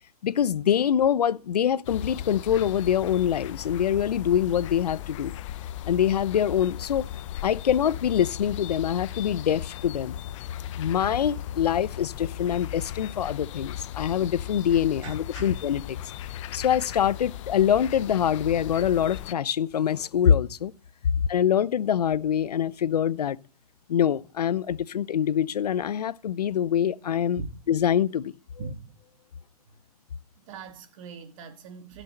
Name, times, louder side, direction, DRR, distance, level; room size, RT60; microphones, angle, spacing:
voice 1, 0.2-5.3 5.9-7.1 7.4-10.2 10.7-16.0 16.5-20.7 21.3-23.4 23.9-27.4 27.7-28.3, left 9 dB, 85° left, 0.8 m, -24 dB
sound 1, 1.8-19.3, left 11 dB, 50° left, 0.7 m, -37 dB
voice 2, 15.0-15.5 21.1-21.3 27.4-27.5 28.6-29.0 30.4-32.0, right 5 dB, 55° right, 2.8 m, -40 dB
16.0 x 6.4 x 7.8 m
hypercardioid pair, 135°, 20 cm